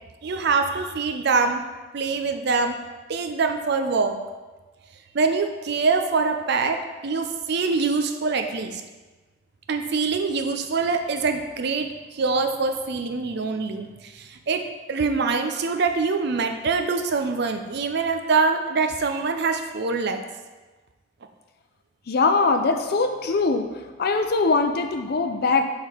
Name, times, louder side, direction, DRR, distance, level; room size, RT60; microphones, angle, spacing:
voice 1, 0.2-1.6 1.9-2.7 3.1-4.1 5.1-8.8 9.7-11.9 12.1-14.6 14.9-20.2, right 4 dB, 60° right, 6 dB, 0.5 m, -24 dB
voice 2, 22.1-23.7 24.0-25.7, left 4 dB, 55° left, 6 dB, 0.5 m, -21 dB
6.6 x 3.6 x 4.5 m, 1.2 s
head